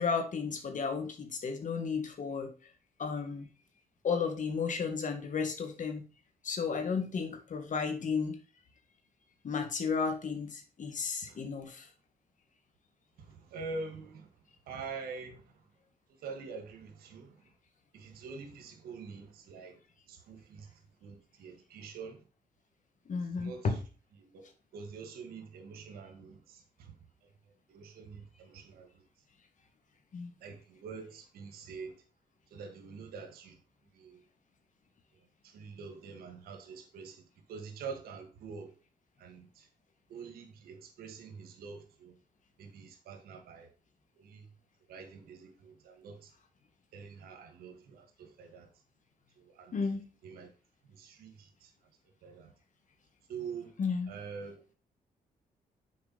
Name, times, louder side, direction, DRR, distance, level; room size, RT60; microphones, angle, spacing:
voice 1, 0.0-2.5 3.0-3.5 4.0-6.0 6.4-8.4 9.4-11.9 23.1-23.8 30.1-30.3 49.7-50.0 53.8-54.1, left 5 dB, 55° left, 2.0 m, -33 dB
voice 2, 13.2-14.3 14.7-15.6 16.2-17.4 17.9-19.8 20.1-22.2 23.4-23.8 24.2-24.4 24.7-27.0 27.7-29.1 30.4-32.0 32.5-33.6 33.9-34.2 35.4-38.7 39.2-39.7 40.1-42.2 42.6-43.7 44.2-44.5 44.9-46.3 46.9-48.7 49.4-49.8 50.2-50.5 50.8-51.7 52.2-52.5 53.3-53.7 54.1-54.6, right 5 dB, 90° right, 1.6 m, -45 dB
6.8 x 5.0 x 5.4 m
cardioid pair, 70°, 15 cm